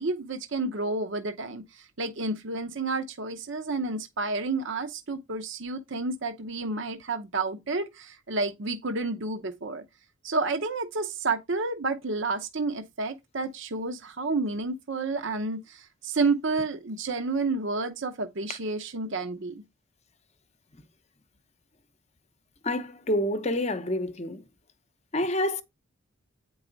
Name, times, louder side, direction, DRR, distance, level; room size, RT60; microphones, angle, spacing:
voice 1, 0.0-9.8 10.2-19.6, right 3 dB, 60° right, 0.8 m, -30 dB
voice 2, 22.6-24.4 25.1-25.6, left 1 dB, 30° left, 0.8 m, -28 dB
8.8 x 4.7 x 3.9 m
head